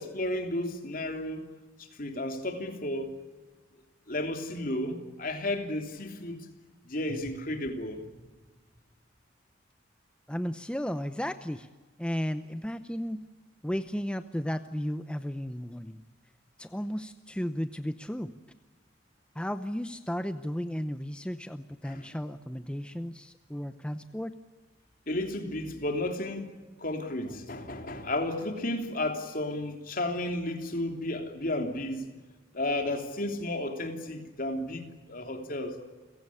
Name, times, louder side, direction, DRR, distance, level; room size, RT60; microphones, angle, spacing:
voice 1, 0.0-1.5 2.0-3.1 4.1-6.5 6.9-8.0 21.8-22.1 25.1-26.5 26.8-32.1 32.5-35.8, left 1 dB, 50° left, 3.2 m, -33 dB
voice 2, 10.3-11.7 12.0-13.2 13.6-16.0 16.6-18.3 19.3-24.4, equal, 5° left, 0.7 m, -34 dB
29.5 x 16.5 x 8.5 m
head